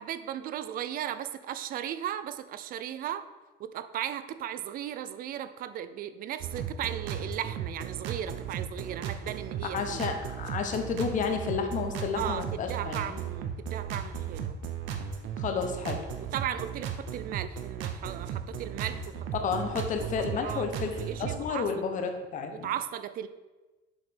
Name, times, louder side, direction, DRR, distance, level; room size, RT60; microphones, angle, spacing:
voice 1, 0.0-3.2 3.6-10.0 12.2-14.6 16.3-19.3 20.0-21.7 22.5-23.3, right 10 dB, 45° right, 13 dB, 0.4 m, -36 dB
sound 1, 6.4-21.4, right 8 dB, 65° right, 0.9 m, -36 dB
voice 2, 9.7-13.0 15.4-16.0 19.4-22.7, left 5 dB, 40° left, 5 dB, 1.0 m, -31 dB
7.4 x 5.1 x 5.1 m, 1.2 s
cardioid pair, 160°, 21 cm